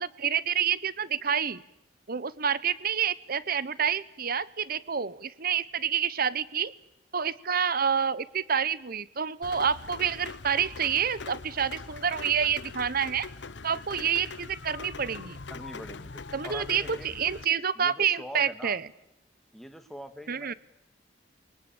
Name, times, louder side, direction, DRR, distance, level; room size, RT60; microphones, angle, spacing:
voice 1, 0.0-1.6 2.1-6.7 7.1-13.3 13.6-15.4 16.3-18.8 20.3-20.5, right 7 dB, 55° right, 18 dB, 1.0 m, -28 dB
Rain, 9.4-17.4, left 4 dB, 75° left, 1.0 m, -42 dB
voice 2, 15.5-17.1 17.7-18.8 19.5-20.5, equal, ahead, 8 dB, 1.8 m, -44 dB
28.5 x 23.0 x 8.9 m, 0.86 s
head